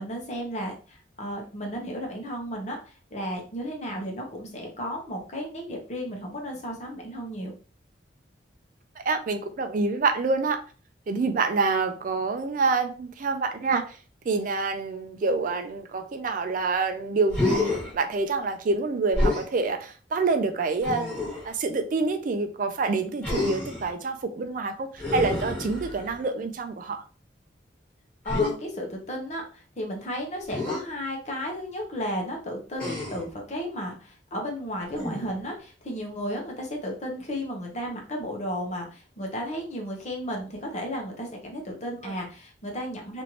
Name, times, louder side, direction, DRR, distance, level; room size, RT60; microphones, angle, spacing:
voice 1, 0.0-7.5 28.2-43.2, equal, 40° left, 0 dB, 0.9 m, -34 dB
voice 2, 9.0-10.6 11.1-14.0 14.3-21.1 21.4-27.0 42.0-42.1, right 4 dB, 45° right, 8 dB, 0.4 m, -27 dB
Human voice, 17.3-17.9 19.1-19.5 20.8-21.5 23.2-23.9 25.0-26.2 28.3-28.5 30.5-30.8 32.8-33.3 34.9-35.4, left 2 dB, 10° left, 1.5 m, -28 dB
3.1 x 2.6 x 2.9 m, 0.38 s
head